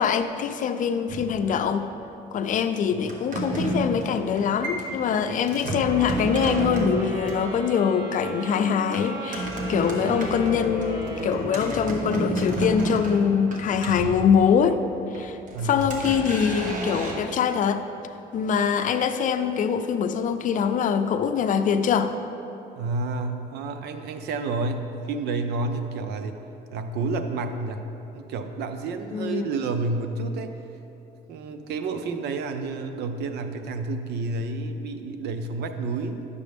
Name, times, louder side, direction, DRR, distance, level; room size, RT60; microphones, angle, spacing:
voice 1, 0.0-1.9 2.3-14.8 15.1-15.4 15.6-17.8 18.3-22.1 29.1-29.4, left 7 dB, 50° left, 9 dB, 0.5 m, -23 dB
sound 1, 1.1-1.9 3.0-7.5 8.9-14.7 15.1-17.1, right 1 dB, 50° right, 1.5 m, -31 dB
sound 2, 5.7-12.3, equal, 20° right, 1.9 m, -34 dB
voice 2, 15.5-15.8 22.8-26.4 26.7-27.8 28.1-30.5 31.3-36.2, right 3 dB, 80° right, 7 dB, 0.7 m, -30 dB
11.0 x 6.7 x 3.5 m, 3.0 s
cardioid pair, 110°, 17 cm